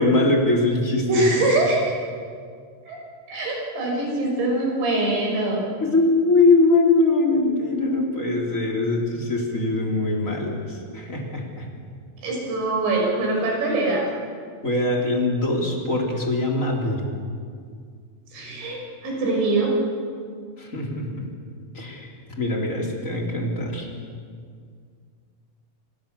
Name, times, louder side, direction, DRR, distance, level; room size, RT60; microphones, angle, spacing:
voice 1, 0.0-1.3 5.8-11.7 14.6-17.0 20.6-21.3 21.7-22.1 22.4-23.9, left 2 dB, 15° left, 0 dB, 3.6 m, -22 dB
voice 2, 1.1-2.0 2.9-3.0 3.3-5.6 12.2-14.0 18.3-19.7, right 2 dB, 60° right, 0 dB, 8.2 m, -23 dB
28.0 x 26.5 x 7.2 m, 2.1 s
omnidirectional pair, 5.7 m